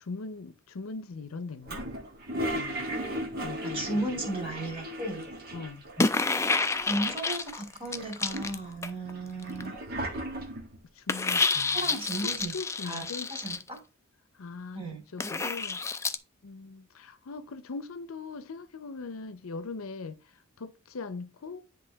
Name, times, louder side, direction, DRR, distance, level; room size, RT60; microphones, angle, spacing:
voice 1, 0.0-1.9 2.5-3.0 3.4-4.1 5.5-5.8 11.0-13.3 14.4-14.9 15.1-15.8 16.4-20.2 20.6-21.6, left 4 dB, 80° left, 0.6 m, -40 dB
Toilet flush, 1.6-6.0 6.3-6.4 6.6-7.4 7.9-10.8, right 1 dB, 45° right, 1.4 m, -36 dB
voice 2, 3.7-5.3 6.9-9.8 11.3-11.5 11.7-12.5 12.8-13.8 14.7-15.0, right 1 dB, 25° right, 2.3 m, -35 dB
sound 1, 6.0-9.1 9.4-9.6 11.1-13.6 15.2-16.2, left 4 dB, 15° left, 0.4 m, -29 dB
9.8 x 3.5 x 3.4 m
head